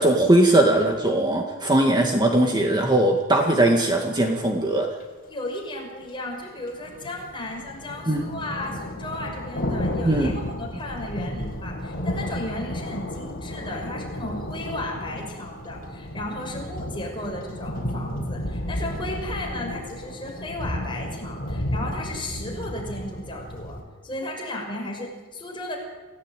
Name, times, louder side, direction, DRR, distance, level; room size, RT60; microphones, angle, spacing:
voice 1, 0.0-4.9 8.1-8.3 10.0-10.3, right 1 dB, 20° right, 2 dB, 2.0 m, -20 dB
sound 1, 5.0-5.1 6.0-23.8, left 1 dB, 45° left, 5.0 m, -32 dB
voice 2, 5.3-25.8, left 1 dB, 25° left, 1 dB, 6.2 m, -34 dB
27.5 x 17.0 x 9.2 m, 1.3 s
head